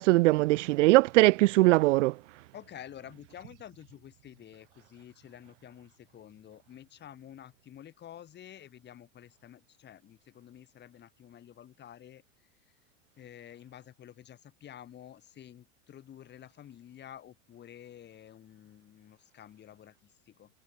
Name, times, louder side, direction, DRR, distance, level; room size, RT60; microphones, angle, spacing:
voice 1, 0.0-2.1, right 21 dB, 60° right, 0.7 m, -21 dB
voice 2, 2.5-12.2 13.2-20.5, left 10 dB, 25° left, 7.5 m, -50 dB
supercardioid pair, 150°, 41 cm